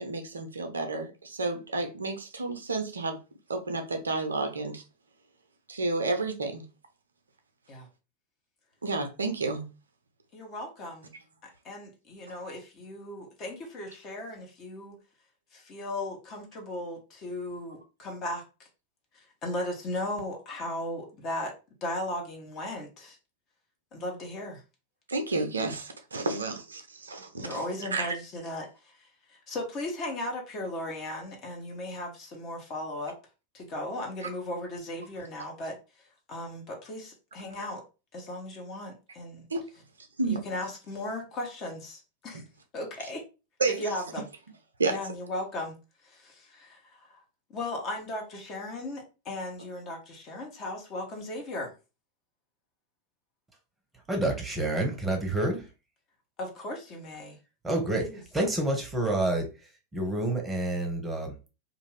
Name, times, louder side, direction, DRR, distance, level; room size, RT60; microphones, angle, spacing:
voice 1, 0.0-3.2 3.5-4.8 5.7-6.6 8.8-9.7 25.1-27.6 27.9-28.1 37.5-37.6 39.5-39.6 40.2-40.5 43.6-43.8 44.8-45.0, right 3 dB, 75° right, 0.5 m, -31 dB
voice 2, 10.3-11.1 11.6-15.0 15.5-18.4 19.4-21.5 21.8-23.2 23.9-24.6 27.4-29.0 29.3-33.2 33.5-35.8 36.3-37.8 38.1-39.4 40.3-42.4 42.7-43.2 43.7-44.3 44.9-45.8 46.0-47.2 47.5-51.7 56.4-57.4 58.0-58.2, left 1 dB, 35° left, 1.0 m, -36 dB
voice 3, 54.1-55.7 57.6-61.3, right 1 dB, 10° right, 0.9 m, -29 dB
2.5 x 2.5 x 3.2 m
figure-of-eight pair, 90°, 0 cm